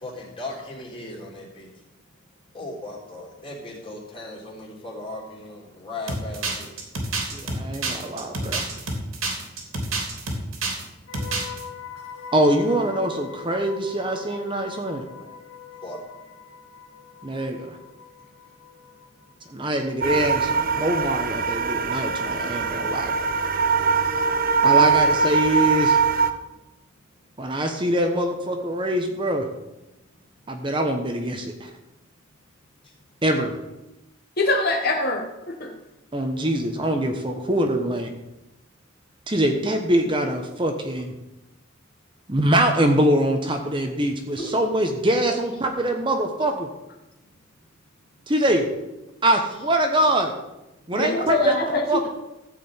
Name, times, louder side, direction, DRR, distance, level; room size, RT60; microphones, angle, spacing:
voice 1, 0.0-1.7 2.5-6.7 15.8-16.0 44.4-44.5, left 2 dB, 25° left, -3 dB, 3.6 m, -37 dB
sound 1, 6.1-10.8 11.1-11.6, right 3 dB, 85° right, 2.9 m, -28 dB
voice 2, 7.3-8.6 12.3-15.0 17.2-17.8 19.5-23.1 24.6-26.0 27.4-29.5 30.5-31.7 33.2-33.6 36.1-38.1 39.3-41.1 42.3-46.7 48.3-48.6 49.2-50.3 50.9-51.5 51.9-52.1, right 1 dB, 25° right, 4 dB, 1.1 m, -23 dB
sound 2, 11.1-21.1 21.4-21.7, left 8 dB, 85° left, 1.9 m, -43 dB
sound 3, 20.0-26.3, right 5 dB, 45° right, 0.8 m, -22 dB
voice 3, 34.4-35.7 50.9-52.1, left 2 dB, 50° left, 2 dB, 1.2 m, -24 dB
14.5 x 5.1 x 8.8 m, 0.97 s
head